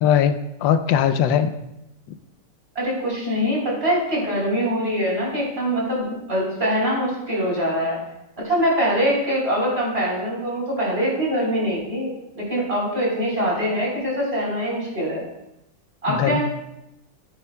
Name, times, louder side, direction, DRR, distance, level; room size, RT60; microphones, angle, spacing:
voice 1, 0.0-1.5 16.1-16.4, left 9 dB, 90° left, 10 dB, 1.4 m, -20 dB
voice 2, 2.8-8.0 8.4-15.2 16.0-16.4, equal, 30° right, -4 dB, 3.9 m, -23 dB
15.0 x 9.1 x 2.2 m, 0.87 s
omnidirectional pair, 2.0 m